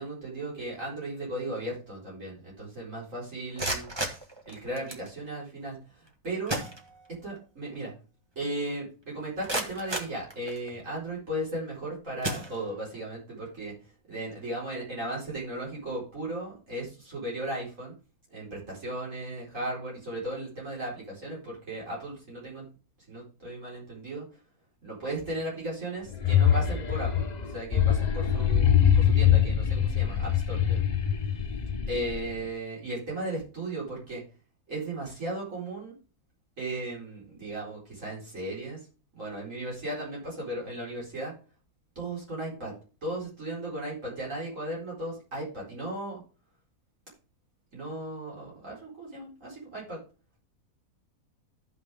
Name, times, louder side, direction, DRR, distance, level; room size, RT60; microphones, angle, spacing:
voice 1, 0.0-3.9 4.5-6.6 7.1-7.9 8.4-13.7 14.1-17.9 18.3-22.7 23.1-24.2 24.8-27.3 27.5-30.8 31.9-34.2 34.7-35.9 36.6-38.8 39.1-41.3 42.0-42.7 43.0-46.2 47.7-50.0, right 1 dB, 55° right, -5 dB, 4.7 m, -36 dB
sound 1, 3.4-5.1 6.1-6.2 6.5-7.4 7.7-7.8 8.4-8.5 9.0-10.9 11.5-11.7 12.2-13.0, right 1 dB, 20° right, 1.4 m, -35 dB
sound 2, 26.1-32.4, left 9 dB, 35° left, 0.8 m, -24 dB
13.5 x 5.8 x 3.5 m, 0.36 s
omnidirectional pair, 1.6 m